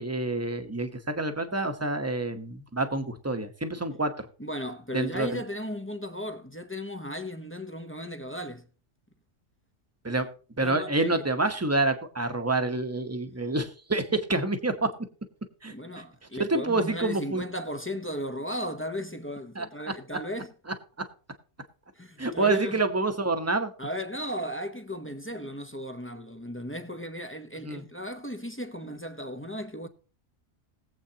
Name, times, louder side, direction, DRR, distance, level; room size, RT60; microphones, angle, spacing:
voice 1, 0.0-4.1 4.9-5.4 10.0-10.3 10.6-14.9 15.6-16.0 16.4-17.4 19.5-19.7 22.2-23.7 27.6-27.8, right 2 dB, 15° right, 1.0 m, -27 dB
voice 2, 4.4-8.6 10.6-11.2 15.7-20.5 22.0-22.8 23.8-29.9, equal, 15° left, 0.7 m, -36 dB
20.5 x 7.9 x 2.9 m
omnidirectional pair, 1.3 m